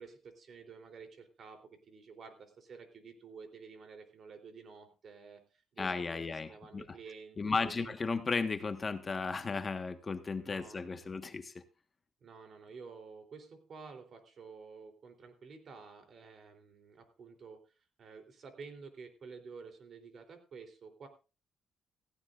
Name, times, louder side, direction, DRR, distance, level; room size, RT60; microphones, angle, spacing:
voice 1, 0.0-7.9 10.4-11.1 12.2-17.6 18.0-21.1, right 5 dB, 55° right, 5 dB, 3.5 m, -51 dB
voice 2, 5.8-6.8 7.4-11.5, left 4 dB, 35° left, 8 dB, 1.4 m, -35 dB
17.0 x 15.5 x 2.5 m, 0.33 s
cardioid pair, 90°, 0 cm